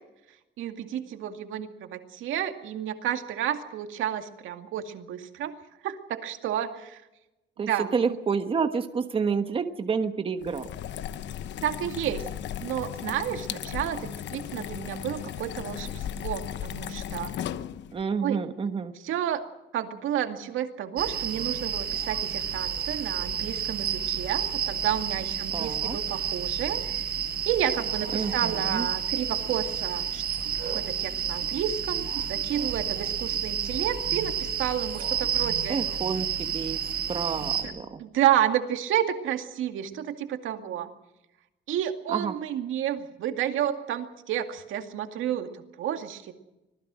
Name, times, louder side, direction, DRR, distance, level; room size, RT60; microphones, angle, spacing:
voice 1, 0.6-5.6 5.8-7.0 7.6-8.2 11.6-12.3 12.6-17.3 18.2-18.4 19.0-19.4 19.7-26.9 27.5-30.2 30.7-35.8 37.6-37.7 38.0-40.9 41.7-46.3, right 10 dB, 90° right, 6 dB, 2.3 m, -30 dB
voice 2, 7.6-10.7 17.9-18.9 25.5-26.0 28.1-28.9 35.7-36.8 37.1-38.0 42.1-42.3, right 5 dB, 25° right, 8 dB, 1.3 m, -29 dB
sound 1, 10.4-18.0, left 10 dB, 65° left, 1.0 m, -36 dB
sound 2, 21.0-37.6, right 8 dB, 50° right, 6.4 m, -30 dB
25.5 x 19.0 x 6.3 m, 0.94 s
cardioid pair, 160°, 20 cm